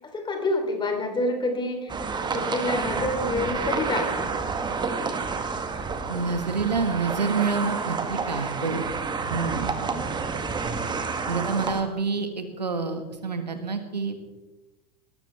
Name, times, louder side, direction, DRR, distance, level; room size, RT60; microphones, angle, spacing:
voice 1, 0.0-4.3 9.8-10.2, left 2 dB, 20° left, 4 dB, 3.3 m, -28 dB
sound 1, 1.9-11.8, right 4 dB, 20° right, 1.7 m, -29 dB
voice 2, 6.1-8.9 9.2-9.7 11.3-14.2, right 4 dB, 85° right, 7 dB, 1.6 m, -28 dB
20.0 x 13.0 x 3.4 m, 1.1 s
figure-of-eight pair, 80°, 21 cm